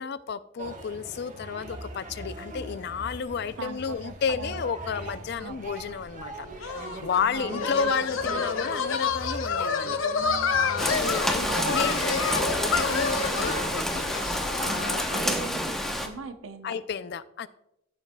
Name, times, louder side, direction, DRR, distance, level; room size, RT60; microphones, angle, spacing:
voice 1, 0.0-10.0 10.6-14.0 14.6-15.4 16.6-17.5, left 6 dB, 55° left, 15 dB, 0.4 m, -32 dB
sound 1, 0.6-13.9, right 2 dB, 40° right, 1.2 m, -40 dB
voice 2, 3.6-4.6 5.4-5.6 7.3-7.9 11.4-11.7 14.6-16.7, right 4 dB, 80° right, 9 dB, 0.8 m, -39 dB
sound 2, 6.6-14.7, left 5 dB, 80° left, 0.7 m, -29 dB
Rain, 10.8-16.1, equal, ahead, 0.8 m, -28 dB
15.0 x 7.2 x 2.2 m, 0.83 s
head